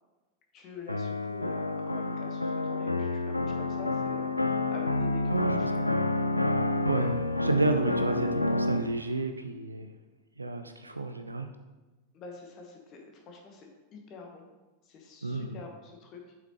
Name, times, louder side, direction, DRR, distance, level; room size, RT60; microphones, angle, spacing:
voice 1, 0.5-5.8 12.1-14.5 14.8-16.3, left 4 dB, 35° left, 2 dB, 1.3 m, -46 dB
sound 1, 0.9-8.9, left 2 dB, 85° left, 0.4 m, -29 dB
voice 2, 5.3-5.9 6.9-9.9 10.4-11.5 15.2-15.6, right 2 dB, 80° right, 7 dB, 0.4 m, -31 dB
7.8 x 5.8 x 3.1 m, 1.2 s
figure-of-eight pair, 90°, 0 cm